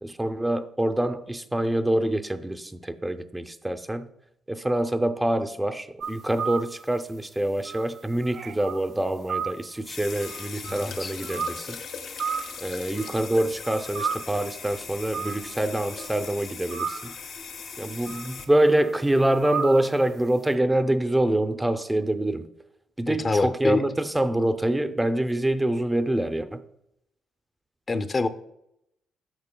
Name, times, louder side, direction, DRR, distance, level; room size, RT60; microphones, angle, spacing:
voice 1, 0.0-4.1 4.5-11.8 12.6-17.1 17.8-22.5 23.0-26.6, right 1 dB, 10° right, 0.5 m, -25 dB
sound 1, 6.0-6.8 7.7-8.8 9.3-9.7 10.2-11.5 12.2-12.7 13.0-13.4 13.6-14.2 15.1-15.5 16.0-16.1 16.7-17.1 18.1-18.4 18.8-18.9 19.4-19.9, right 6 dB, 55° right, 0.5 m, -32 dB
sound 2, 9.8-18.5, left 6 dB, 65° left, 0.8 m, -39 dB
voice 2, 10.7-11.1 23.1-23.8 27.9-28.3, left 3 dB, 35° left, 0.6 m, -25 dB
8.8 x 6.2 x 2.2 m
cardioid pair, 90°, 0 cm